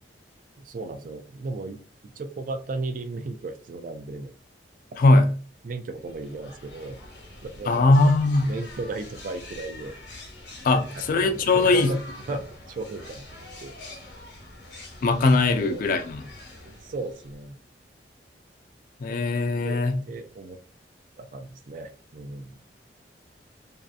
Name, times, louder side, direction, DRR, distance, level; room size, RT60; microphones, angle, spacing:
voice 1, 0.6-4.3 5.6-7.0 7.4-7.8 8.4-10.0 10.7-12.0 12.3-13.7 15.5-15.9 16.6-17.6 19.6-20.6 21.2-22.6, right 3 dB, 50° right, 0.3 m, -36 dB
voice 2, 5.0-5.3 7.7-8.5 10.6-11.9 15.0-16.2 19.0-20.0, left 2 dB, 50° left, 0.3 m, -20 dB
sound 1, 6.0-17.6, left 2 dB, 80° left, 1.0 m, -44 dB
2.7 x 2.4 x 2.3 m
head